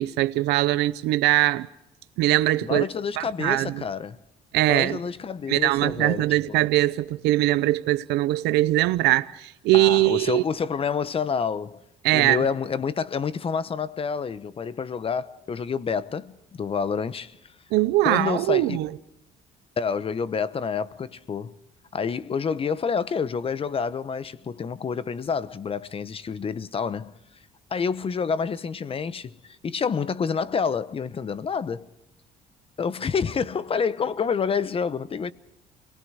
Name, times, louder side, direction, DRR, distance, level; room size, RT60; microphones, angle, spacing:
voice 1, 0.0-1.7 2.2-2.9 3.2-3.8 4.5-5.0 5.5-10.4 12.0-12.4 17.7-18.9, right 17 dB, 90° right, 0.7 m, -21 dB
voice 2, 2.6-4.2 4.7-6.6 9.7-11.8 12.1-17.4 18.0-18.8 19.8-21.6 21.9-27.1 27.7-31.9 32.8-35.3, left 6 dB, 35° left, 0.9 m, -28 dB
29.0 x 19.5 x 4.9 m
cardioid pair, 110°, 17 cm